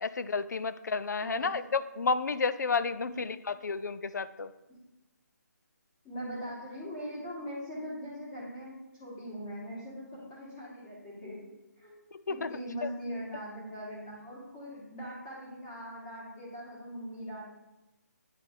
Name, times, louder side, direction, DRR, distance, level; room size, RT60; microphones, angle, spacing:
voice 1, 0.0-4.5 12.3-12.5 12.8-12.9, left 4 dB, 75° left, 13 dB, 0.4 m, -31 dB
voice 2, 1.2-1.6 3.1-3.2 6.0-11.4 11.8-12.0 12.3-17.5, equal, 15° left, -7 dB, 1.5 m, -41 dB
9.1 x 3.4 x 3.6 m, 0.99 s
hypercardioid pair, 170°, 10 cm